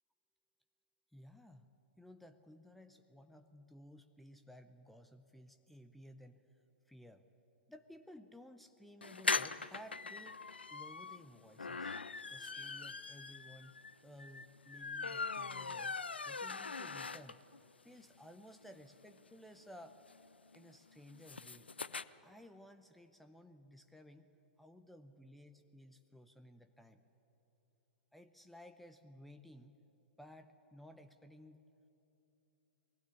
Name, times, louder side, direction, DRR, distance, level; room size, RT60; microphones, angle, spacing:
voice 1, 1.1-1.7 2.0-6.4 6.9-7.2 7.7-12.0 12.3-13.8 14.0-16.0 16.3-17.4 17.8-20.0 20.5-21.7 22.2-24.3 24.6-27.0 28.1-29.8 30.2-31.7, equal, ahead, 8 dB, 0.7 m, -57 dB
sound 1, 9.0-17.6 18.0-18.1 18.3-18.4 18.6-22.0, left 4 dB, 80° left, 0.5 m, -41 dB
20.5 x 15.5 x 9.6 m, 2.9 s
figure-of-eight pair, 110°, 6 cm